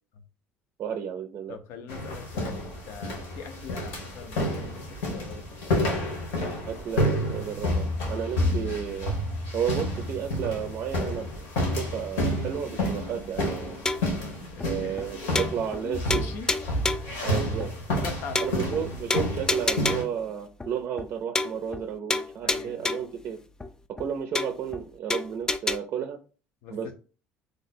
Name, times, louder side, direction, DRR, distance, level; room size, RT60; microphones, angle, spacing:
voice 1, 0.8-1.6 6.7-9.1 9.5-11.3 11.7-13.8 14.6-16.2 17.2-17.7 18.4-23.4 24.0-26.2 26.7-26.9, right 8 dB, 55° right, 5 dB, 0.4 m, -32 dB
voice 2, 1.5-5.5 14.1-15.1 15.8-16.5 16.7-16.9 18.0-18.6 22.4-23.0 26.6-26.9, left 6 dB, 70° left, 7 dB, 0.6 m, -42 dB
sound 1, 1.9-20.0, left 1 dB, 90° left, 1.3 m, -30 dB
sound 2, 13.9-14.2 14.6-14.7 15.0-15.1 15.4-15.8 16.1-17.2 17.6-17.7 18.0-18.1 18.4-18.8 19.1-20.2 20.6-20.7 21.0-21.1 21.4-21.8 22.1-23.2 23.6-23.7 24.0-24.1 24.4-24.8 25.1-25.8, left 2 dB, 15° left, 0.3 m, -29 dB
3.1 x 2.0 x 4.1 m, 0.36 s
supercardioid pair, 85°, 5 cm